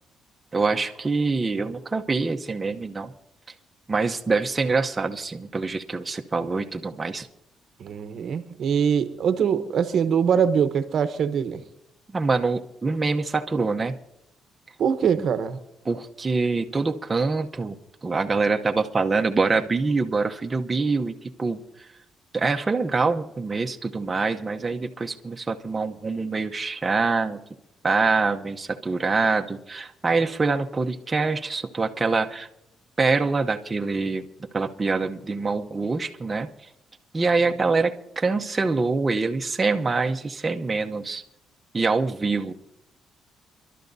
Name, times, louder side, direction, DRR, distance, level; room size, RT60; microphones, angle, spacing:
voice 1, 0.5-3.1 3.9-7.3 12.1-13.9 15.2-15.3 15.9-17.8 18.0-21.1 21.4-21.6 22.3-27.4 27.8-32.5 33.0-34.2 34.5-36.5 37.1-41.2 41.7-42.5, right 4 dB, 25° right, 3 dB, 0.8 m, -25 dB
voice 2, 7.8-11.6 14.8-15.6, right 7 dB, 65° right, 11 dB, 0.9 m, -23 dB
29.5 x 12.0 x 2.7 m, 0.83 s
cardioid pair, 90°, 0 cm